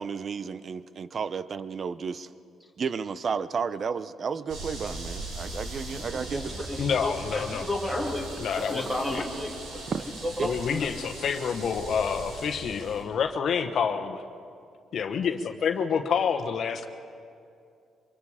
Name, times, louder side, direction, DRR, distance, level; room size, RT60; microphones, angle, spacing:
voice 1, 0.0-2.3 2.8-6.5 9.9-10.0, right 6 dB, 45° right, 15 dB, 0.7 m, -32 dB
sound 1, 4.5-13.0, right 2 dB, 85° right, 5.1 m, -39 dB
voice 2, 6.0-8.3 8.6-9.8 10.2-10.9, left 1 dB, 5° right, -1 dB, 2.7 m, -33 dB
voice 3, 6.8-7.6 8.4-9.2 10.4-14.2 14.9-16.9, left 6 dB, 60° left, 7 dB, 1.2 m, -28 dB
24.5 x 22.5 x 5.0 m, 2.4 s
cardioid pair, 90°, 0 cm